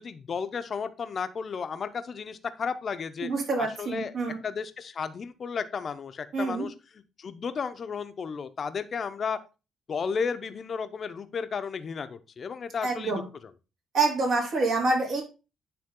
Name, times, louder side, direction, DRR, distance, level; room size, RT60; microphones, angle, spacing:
voice 1, 0.0-3.3 3.6-4.1 4.4-9.4 9.9-13.2, left 6 dB, 45° left, 10 dB, 0.7 m, -33 dB
voice 2, 3.2-4.4 6.3-6.6 12.8-13.2 13.9-15.2, right 3 dB, 70° right, 0 dB, 3.0 m, -27 dB
9.6 x 3.5 x 3.7 m, 0.30 s
cardioid pair, 90°, 0 cm